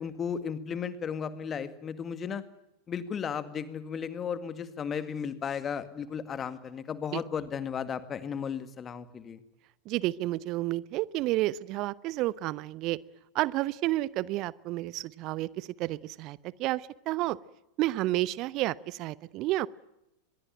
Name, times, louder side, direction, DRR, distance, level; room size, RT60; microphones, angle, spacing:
voice 1, 0.0-2.4 2.9-9.4, left 7 dB, 25° left, 12 dB, 2.0 m, -35 dB
voice 2, 9.9-13.0 13.3-17.4 17.8-19.7, right 17 dB, 40° right, 20 dB, 0.9 m, -30 dB
24.0 x 22.0 x 9.0 m, 0.87 s
figure-of-eight pair, 90°, 0 cm